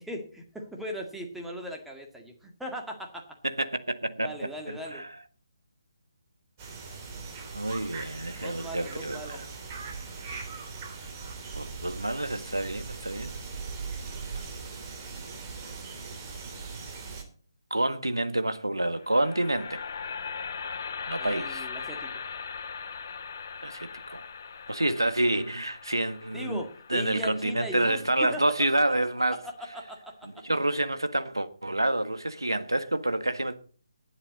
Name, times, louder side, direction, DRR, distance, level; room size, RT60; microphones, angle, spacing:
voice 1, 0.0-3.3 4.2-5.0 8.4-9.4 21.2-22.1 26.3-28.4 29.7-30.1, right 1 dB, ahead, 2.0 m, -39 dB
voice 2, 3.4-4.3 4.7-5.2 7.5-9.4 11.5-13.3 17.7-19.8 21.1-21.6 23.6-24.2 24.7-26.6 26.9-29.4 30.2-33.5, right 1 dB, 85° right, 1.4 m, -28 dB
sound 1, 6.6-17.2, right 4 dB, 25° right, 3.0 m, -40 dB
sound 2, 19.0-29.1, left 6 dB, 45° left, 1.3 m, -40 dB
19.5 x 8.1 x 4.1 m
figure-of-eight pair, 145°, 2 cm